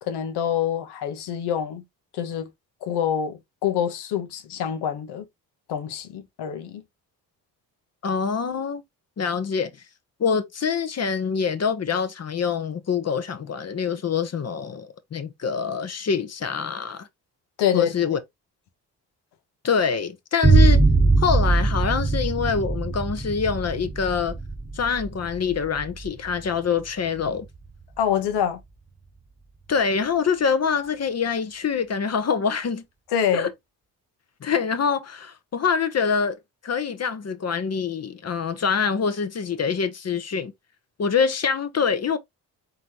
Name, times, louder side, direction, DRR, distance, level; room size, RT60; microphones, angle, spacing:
voice 1, 0.0-1.8 2.1-2.5 2.8-5.2 5.7-6.8 17.6-18.2 28.0-28.6 33.1-33.5, left 9 dB, 80° left, 1.2 m, -26 dB
voice 2, 8.0-8.8 9.2-9.7 10.2-17.1 17.7-18.2 19.6-20.8 21.2-24.4 24.7-27.4 29.7-32.8 33.3-33.5 34.4-36.4 36.6-40.5 41.0-42.2, left 6 dB, 40° left, 1.0 m, -25 dB
sound 1, 20.4-27.8, right 3 dB, 10° right, 1.2 m, -21 dB
4.1 x 3.9 x 3.0 m
supercardioid pair, 65°, 40 cm